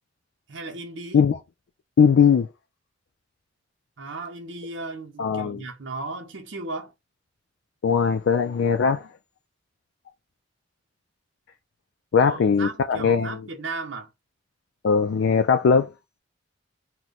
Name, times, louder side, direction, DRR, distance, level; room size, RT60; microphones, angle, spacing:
voice 1, 0.5-1.3 4.0-6.9 12.2-14.1, right 3 dB, 75° right, 0.8 m, -35 dB
voice 2, 2.0-2.5 5.2-5.6 7.8-9.1 12.1-13.4 14.8-15.9, left 6 dB, 75° left, 0.4 m, -20 dB
2.9 x 2.2 x 3.8 m
head